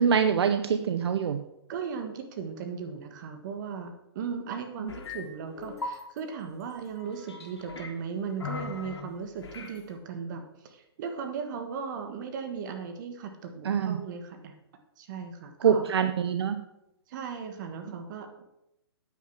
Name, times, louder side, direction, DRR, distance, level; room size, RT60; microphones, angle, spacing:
voice 1, 0.0-1.4 4.8-4.9 13.6-14.0 15.6-16.6, right 7 dB, 75° right, 9 dB, 0.7 m, -24 dB
voice 2, 1.7-14.5 15.0-15.8 17.1-18.4, right 6 dB, 45° right, 6 dB, 1.5 m, -37 dB
sound 1, 4.9-5.2 5.5-6.0 7.0-7.9 8.4-9.0 9.4-9.8, left 4 dB, 85° left, 2.4 m, -39 dB
9.2 x 7.5 x 5.9 m, 0.85 s
hypercardioid pair, 145°, 14 cm